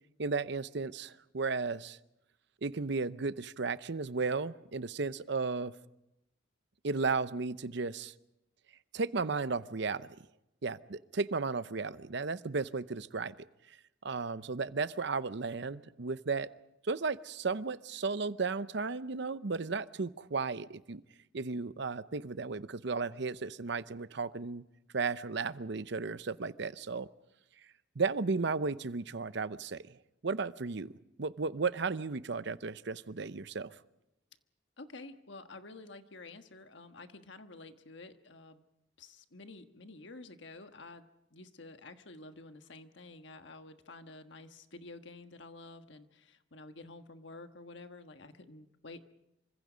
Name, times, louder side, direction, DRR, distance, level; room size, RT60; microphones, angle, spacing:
voice 1, 0.2-2.0 2.6-5.7 6.8-8.1 8.9-10.1 10.6-13.3 14.0-16.5 16.8-21.0 21.3-24.6 24.9-27.1 28.0-30.0 30.2-30.9 31.2-33.7, right 4 dB, 60° right, 15 dB, 0.7 m, -34 dB
voice 2, 34.8-38.6 39.0-49.0, left 2 dB, 65° left, 8 dB, 1.4 m, -50 dB
27.0 x 25.0 x 5.1 m, 0.88 s
head